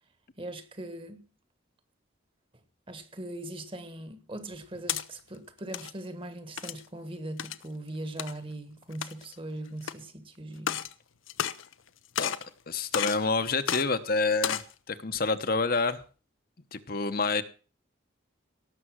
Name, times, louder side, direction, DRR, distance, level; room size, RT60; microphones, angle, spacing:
voice 1, 0.4-1.2 2.9-10.8, right 1 dB, 25° right, 1.4 m, -40 dB
sound 1, 4.5-5.0 5.6-5.9 6.6-6.9 7.4-7.6 8.2-8.3 8.9-9.3 9.8-9.9 10.6-10.9 11.3-11.9 12.2-12.5 12.9-13.2 13.7-13.8 14.3-14.7, left 9 dB, 85° left, 0.8 m, -32 dB
voice 2, 12.7-14.6 14.9-16.0 16.7-17.4, left 3 dB, 45° left, 1.0 m, -28 dB
18.0 x 7.0 x 6.3 m
head